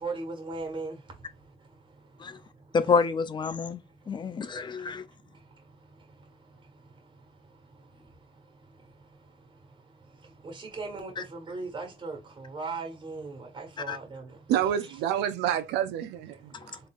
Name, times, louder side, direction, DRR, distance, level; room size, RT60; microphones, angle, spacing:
voice 1, 0.0-0.9 10.4-12.2 12.5-14.2, right 3 dB, 25° right, 1.5 m, -37 dB
voice 2, 2.7-3.8 4.1-5.0 13.9-14.0 16.5-16.8, left 5 dB, 25° left, 0.5 m, -28 dB
voice 3, 14.5-16.5, right 10 dB, 85° right, 0.5 m, -28 dB
3.9 x 3.3 x 2.5 m
cardioid pair, 110°, 17 cm